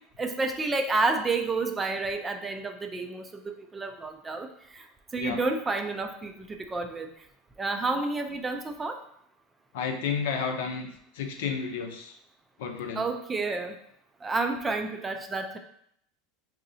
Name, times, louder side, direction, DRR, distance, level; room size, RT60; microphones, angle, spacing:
voice 1, 0.2-4.8 5.1-7.1 7.6-9.0 13.0-13.8 14.2-15.6, right 3 dB, 15° right, 6 dB, 0.4 m, -30 dB
voice 2, 9.7-10.9 11.1-12.1 12.6-13.0, left 6 dB, 85° left, 4 dB, 0.6 m, -31 dB
5.0 x 2.7 x 2.7 m, 0.70 s
supercardioid pair, 145°, 0 cm